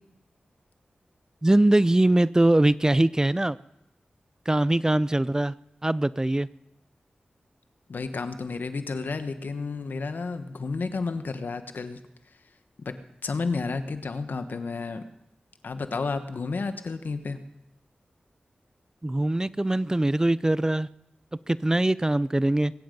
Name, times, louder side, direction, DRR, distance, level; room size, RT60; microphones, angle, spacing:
voice 1, 1.4-3.6 4.5-5.5 5.8-6.5 19.0-20.9 21.5-22.7, right 1 dB, 20° right, 19 dB, 0.4 m, -22 dB
voice 2, 7.9-12.0 12.8-13.0 13.2-15.0 15.6-17.4, left 4 dB, 75° left, 9 dB, 1.2 m, -31 dB
22.0 x 9.4 x 5.3 m, 0.87 s
cardioid pair, 50°, 3 cm